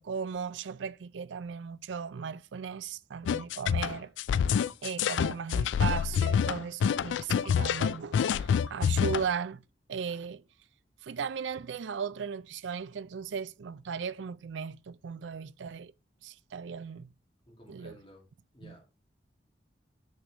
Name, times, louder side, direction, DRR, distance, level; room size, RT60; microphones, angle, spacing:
voice 1, 0.0-4.1 4.8-9.6 9.9-10.4 11.0-15.9 16.2-17.1 17.7-18.0 18.6-18.7, right 6 dB, 85° right, 0.4 m, -37 dB
sound 1, 3.3-9.2, left 7 dB, 85° left, 0.3 m, -27 dB
voice 2, 17.5-18.3 18.5-18.8, equal, 30° left, 2.5 m, -54 dB
6.4 x 6.2 x 3.2 m
head